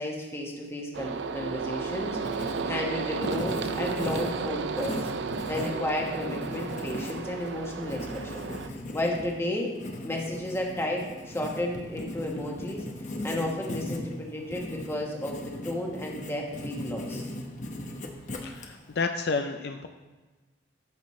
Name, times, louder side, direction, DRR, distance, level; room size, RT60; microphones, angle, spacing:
voice 1, 0.0-5.1 5.5-9.7 10.0-12.9 13.2-17.3, left 1 dB, 15° left, 0 dB, 1.3 m, -33 dB
sound 1, 0.9-8.7, right 5 dB, 70° right, 0.4 m, -33 dB
Writing, 1.8-19.0, left 1 dB, 40° left, 0.9 m, -39 dB
voice 2, 18.4-19.9, left 4 dB, 60° left, 6 dB, 0.4 m, -30 dB
14.0 x 6.2 x 3.2 m, 1.2 s
head